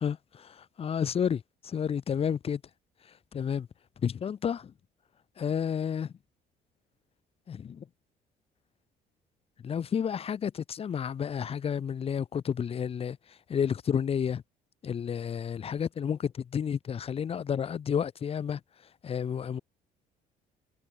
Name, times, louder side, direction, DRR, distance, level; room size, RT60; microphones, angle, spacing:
voice 1, 0.0-2.6 3.3-3.7 4.0-4.7 5.4-6.1 7.5-7.8 9.6-13.2 13.5-14.4 14.8-18.6 19.0-19.6, left 7 dB, 35° left, 0.7 m, -31 dB
cardioid pair, 110°, 17 cm